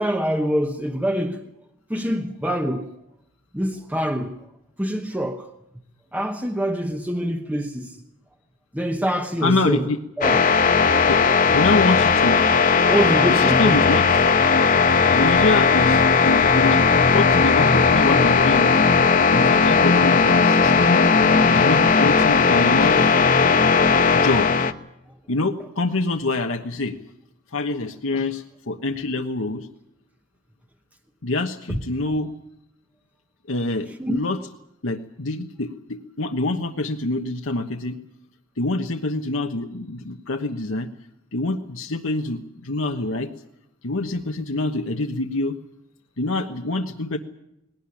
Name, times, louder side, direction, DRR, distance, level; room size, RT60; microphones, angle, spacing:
voice 1, 0.0-1.5 1.9-2.9 3.5-4.4 4.8-5.5 6.1-8.0 8.7-9.9 10.2-10.4 12.8-14.0 31.7-31.8 34.0-34.3, equal, 5° right, 1.0 m, -25 dB
voice 2, 9.4-10.0 11.1-11.2 11.5-12.4 13.3-14.3 15.1-16.8 17.1-18.9 19.3-21.0 21.3-23.5 24.1-24.7 25.3-27.0 27.5-29.7 31.2-32.3 33.5-34.4 34.8-38.0 38.6-40.9 41.3-43.3 43.8-45.6 46.2-47.2, left 2 dB, 70° left, 1.2 m, -26 dB
sound 1, 10.2-24.7, left 5 dB, 40° left, 1.1 m, -17 dB
20.5 x 18.0 x 9.9 m
head